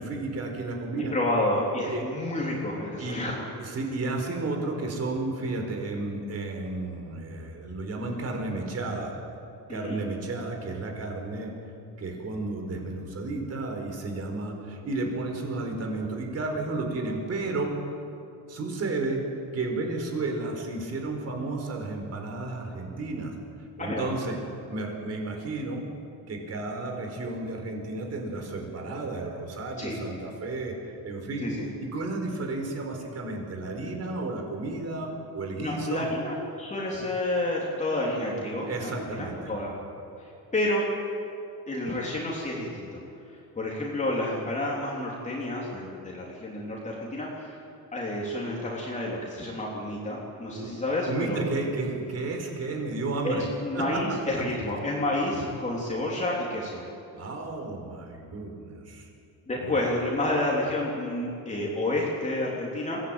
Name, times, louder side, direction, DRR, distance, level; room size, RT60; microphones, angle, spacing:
voice 1, 0.0-1.1 1.8-2.0 3.0-3.2 3.6-9.1 9.7-11.5 12.0-17.7 18.5-19.2 19.5-23.3 23.8-24.4 24.7-25.9 26.3-31.5 31.8-36.0 38.7-39.5 50.5-50.7 51.1-53.5 53.7-54.4 57.1-59.1 59.6-59.8, right 2 dB, 40° right, 3 dB, 4.6 m, -32 dB
voice 2, 1.1-3.3 9.7-10.0 23.8-24.1 29.8-29.9 31.4-31.7 35.6-38.9 39.2-39.7 40.2-40.8 41.7-43.0 43.3-47.6 47.9-51.4 53.2-56.8 59.5-63.0, left 1 dB, 20° left, -4 dB, 3.4 m, -30 dB
22.5 x 17.0 x 9.0 m, 2.6 s
cardioid pair, 140°, 39 cm